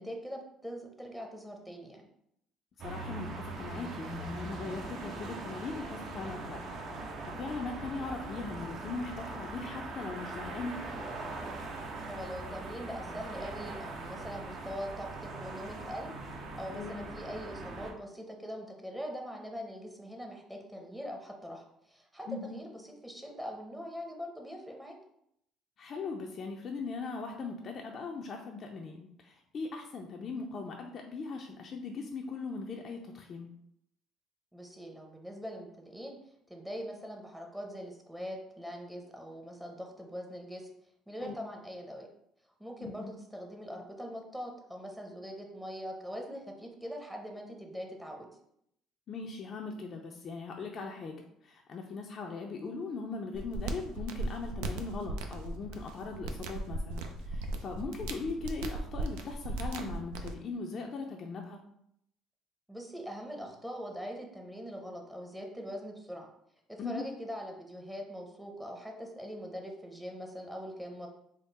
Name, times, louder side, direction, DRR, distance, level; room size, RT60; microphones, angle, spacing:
voice 1, 0.0-2.1 12.0-16.1 16.6-25.0 34.5-40.7 41.1-42.1 42.6-48.3 62.7-66.3 66.7-71.1, equal, 5° right, 1 dB, 0.7 m, -42 dB
voice 2, 2.8-6.6 7.0-10.8 16.7-17.1 22.3-22.5 25.8-33.5 41.2-41.4 42.8-43.1 49.1-61.6 66.8-67.1, left 4 dB, 50° left, 1 dB, 0.4 m, -40 dB
sound 1, 2.8-17.9, right 2 dB, 60° right, 0.7 m, -41 dB
sound 2, 53.3-60.3, right 2 dB, 90° right, 0.4 m, -37 dB
3.6 x 2.0 x 4.0 m, 0.74 s
supercardioid pair, 90°, 0 cm